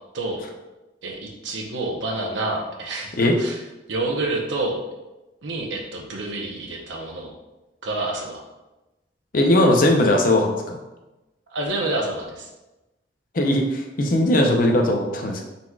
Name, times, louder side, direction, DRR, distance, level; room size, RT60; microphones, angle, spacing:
voice 1, 1.0-3.6 3.9-4.8 5.4-7.3 7.8-8.4 11.5-12.5, right 2 dB, 75° right, 0 dB, 0.8 m, -28 dB
voice 2, 9.3-10.8 13.3-15.4, left 1 dB, 45° left, 2 dB, 0.5 m, -19 dB
4.5 x 4.0 x 2.3 m, 1.0 s
head